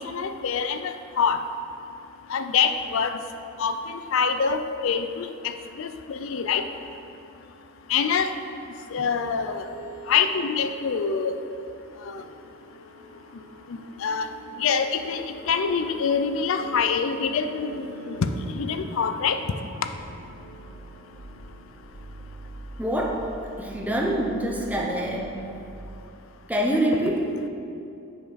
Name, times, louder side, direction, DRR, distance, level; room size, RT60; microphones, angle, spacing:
voice 1, 0.0-1.4 2.3-3.2 3.6-6.6 7.9-8.3 8.9-9.7 10.1-11.4 12.0-12.2 13.7-14.3 14.6-19.4, left 6 dB, 65° left, 8 dB, 0.4 m, -25 dB
sound 1, 9.5-26.0, right 2 dB, 80° right, 0.9 m, -44 dB
voice 2, 22.8-25.5 26.5-27.5, right 1 dB, 5° right, -1 dB, 0.6 m, -26 dB
7.0 x 5.2 x 4.1 m, 2.7 s
head